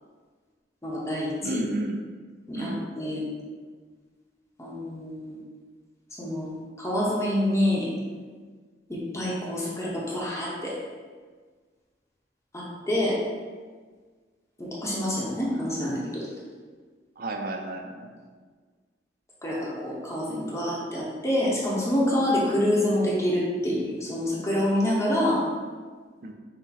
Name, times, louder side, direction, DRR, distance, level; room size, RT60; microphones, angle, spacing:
voice 1, 0.8-1.6 2.5-3.2 4.6-5.4 6.2-7.9 8.9-10.8 12.5-13.2 14.6-16.3 19.4-25.4, left 1 dB, 15° left, -5 dB, 0.7 m, -27 dB
voice 2, 1.4-2.0 2.5-2.8 17.2-18.1 26.2-26.3, right 1 dB, 55° right, 4 dB, 0.5 m, -31 dB
5.9 x 2.0 x 4.1 m, 1.5 s
head